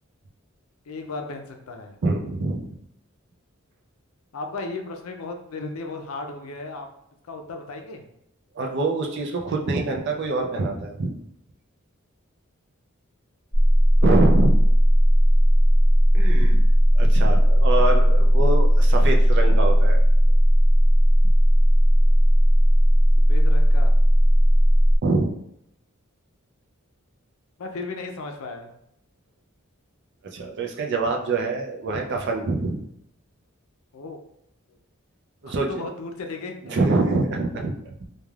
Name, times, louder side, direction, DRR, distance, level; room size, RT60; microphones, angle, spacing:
voice 1, 0.9-1.9 4.3-6.9 7.3-8.0 22.1-22.2 23.3-23.9 27.6-28.7 33.9-34.2 35.5-36.8, left 3 dB, 85° left, 4 dB, 0.4 m, -35 dB
voice 2, 2.0-2.7 8.5-11.2 14.0-14.6 16.1-16.6 17.0-20.0 25.0-25.3 30.3-32.8 35.4-35.8 36.6-38.1, right 3 dB, 55° right, 2 dB, 0.4 m, -25 dB
sound 1, 13.5-25.0, equal, 15° left, 0.6 m, -16 dB
3.2 x 2.3 x 2.3 m, 0.75 s
head